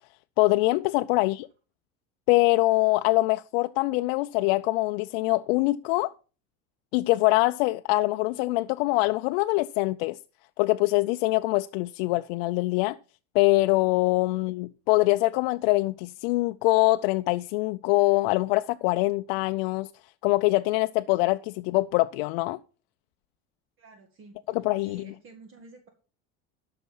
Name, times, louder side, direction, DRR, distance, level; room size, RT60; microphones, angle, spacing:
voice 1, 0.4-1.5 2.3-6.1 6.9-10.2 10.6-13.0 13.3-19.9 20.2-22.6 24.5-25.0, left 21 dB, 80° left, 0.5 m, -24 dB
voice 2, 23.8-24.4 24.8-25.9, right 3 dB, 45° right, 2.0 m, -51 dB
12.5 x 5.8 x 5.5 m
supercardioid pair, 110°, 29 cm